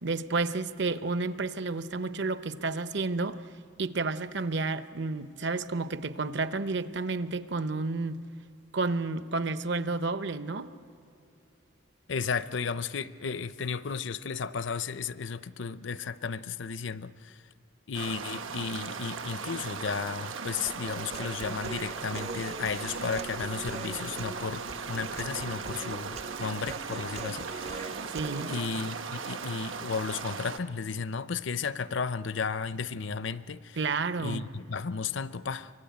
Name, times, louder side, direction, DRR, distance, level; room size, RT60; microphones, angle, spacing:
voice 1, 0.0-3.4 3.8-8.2 8.7-10.7 28.1-28.5 33.8-34.5, right 3 dB, 60° right, 12 dB, 0.8 m, -31 dB
voice 2, 12.1-17.4 17.9-28.0 28.5-33.8 34.2-35.7, left 5 dB, 65° left, 15 dB, 0.6 m, -34 dB
sound 1, 17.9-30.6, right 5 dB, 80° right, 1.2 m, -38 dB
Human voice, 20.7-28.7, right 3 dB, 35° right, 0.5 m, -42 dB
24.0 x 24.0 x 9.4 m, 2.9 s
head